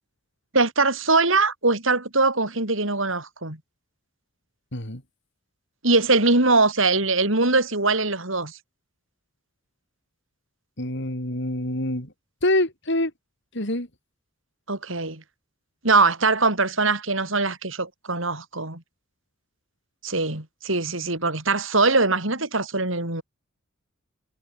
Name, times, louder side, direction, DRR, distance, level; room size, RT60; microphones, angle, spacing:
voice 1, 0.5-3.6 5.8-8.6 14.7-15.2 15.8-18.8 20.0-23.2, right 3 dB, 65° right, 5.5 m, -22 dB
voice 2, 4.7-5.0 10.8-12.1 12.4-13.1 13.5-13.9, left 1 dB, 60° left, 6.2 m, -25 dB
head